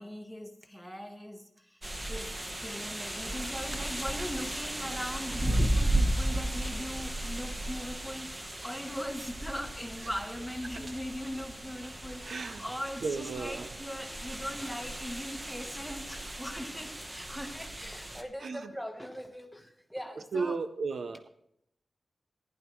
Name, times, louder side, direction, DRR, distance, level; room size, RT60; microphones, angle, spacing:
voice 1, 0.0-1.8 2.1-20.6, equal, ahead, 6 dB, 1.1 m, -40 dB
sound 1, 1.8-18.2, right 1 dB, 20° right, 1.1 m, -35 dB
voice 2, 12.2-12.6 13.0-13.7 18.4-18.6 20.3-21.3, right 4 dB, 75° right, 10 dB, 0.6 m, -34 dB
15.5 x 10.5 x 3.1 m, 0.78 s
wide cardioid pair, 130°, 0 cm